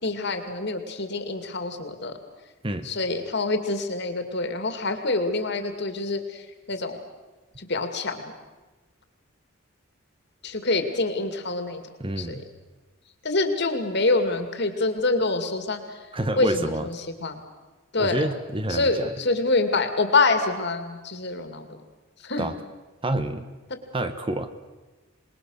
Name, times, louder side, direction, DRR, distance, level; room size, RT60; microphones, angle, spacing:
voice 1, 0.0-2.1 2.8-6.4 6.7-7.0 7.6-8.3 10.4-11.8 12.2-12.4 13.2-15.8 16.4-17.0 17.2-17.4 17.9-18.2 18.7-21.7 22.2-22.5, left 3 dB, 55° left, 7 dB, 2.5 m, -26 dB
voice 2, 12.0-12.4 16.1-16.9 18.0-19.1 22.4-22.5 23.0-23.5 23.9-24.5, right 1 dB, 25° right, 9 dB, 1.1 m, -28 dB
26.5 x 20.5 x 6.6 m, 1.2 s
head